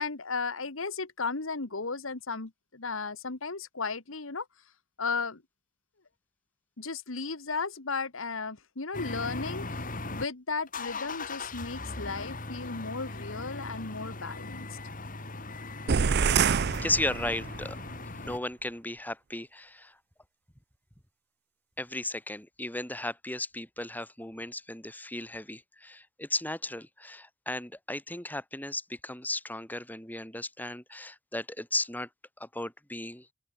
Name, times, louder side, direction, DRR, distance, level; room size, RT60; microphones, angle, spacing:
voice 1, 0.0-4.5 5.0-5.4 6.8-14.8, left 4 dB, 65° left, 1.6 m, -35 dB
sound 1, 8.9-10.2 10.7-18.4, left 3 dB, 40° left, 3.7 m, -39 dB
sound 2, 15.9-17.7, right 6 dB, 50° right, 0.5 m, -26 dB
voice 2, 16.8-20.0 21.8-32.1 32.4-33.3, left 2 dB, 10° left, 3.8 m, -35 dB
open air
head